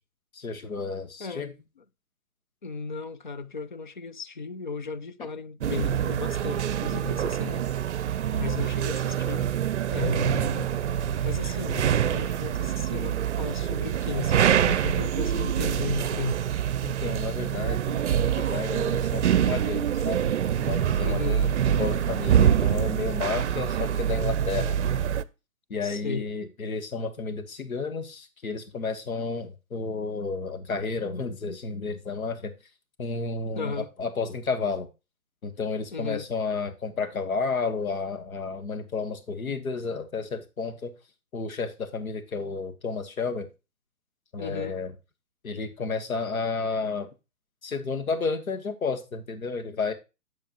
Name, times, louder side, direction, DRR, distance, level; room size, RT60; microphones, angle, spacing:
voice 1, 0.3-1.5 16.8-20.3 20.6-24.8 25.7-32.5 33.0-34.9 35.4-40.9 41.3-43.5 44.3-44.9 45.4-47.1 47.6-49.9, left 4 dB, 75° left, 1.5 m, -31 dB
voice 2, 2.6-7.7 8.3-9.5 9.9-10.8 11.2-16.4 21.0-21.4 25.8-26.3 33.5-33.9 35.9-36.3 44.4-44.8, left 4 dB, 40° left, 0.4 m, -35 dB
sound 1, 5.6-25.2, right 9 dB, 55° right, 0.6 m, -25 dB
8.8 x 7.0 x 2.9 m
figure-of-eight pair, 140°, 42 cm